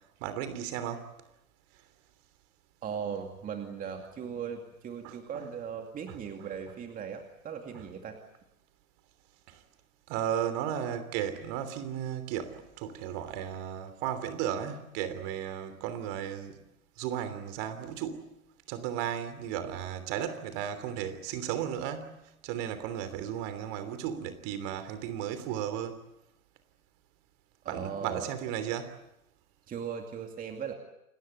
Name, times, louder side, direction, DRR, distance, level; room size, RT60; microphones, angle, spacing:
voice 1, 0.2-1.1 5.0-5.5 6.1-6.5 7.7-7.9 9.5-9.6 10.1-16.6 17.0-18.3 18.7-26.0 27.7-29.0, right 9 dB, 40° right, 11 dB, 3.1 m, -35 dB
voice 2, 2.8-8.2 27.6-28.3 29.7-30.7, right 7 dB, 20° right, 4 dB, 2.4 m, -38 dB
29.0 x 19.5 x 8.3 m, 0.85 s
figure-of-eight pair, 115°, 42 cm